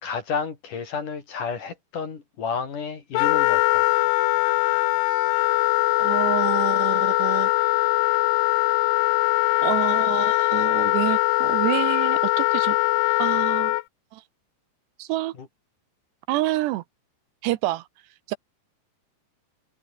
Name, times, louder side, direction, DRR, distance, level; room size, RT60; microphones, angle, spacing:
voice 1, 0.0-3.9 15.4-15.5, left 5 dB, 45° left, 4.2 m, -31 dB
Wind instrument woodwind instrument, 3.1-13.8, left 20 dB, 85° left, 3.1 m, -21 dB
voice 2, 6.0-7.5 9.6-12.8 13.2-13.8 14.1-14.2 15.0-15.3 16.3-16.8 17.4-17.9 18.3-18.4, right 17 dB, 80° right, 2.6 m, -28 dB
omnidirectional pair, 5.7 m